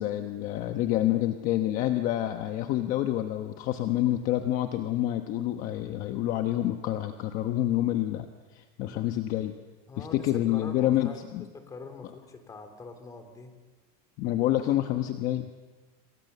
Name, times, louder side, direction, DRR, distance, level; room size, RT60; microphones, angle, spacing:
voice 1, 0.0-9.6 10.0-11.5 14.2-15.5, left 13 dB, 40° left, 7 dB, 1.1 m, -28 dB
voice 2, 9.9-13.5 14.6-14.8, left 4 dB, 15° left, 7 dB, 3.1 m, -44 dB
28.0 x 23.5 x 6.9 m, 1.3 s
supercardioid pair, 160°, 20 cm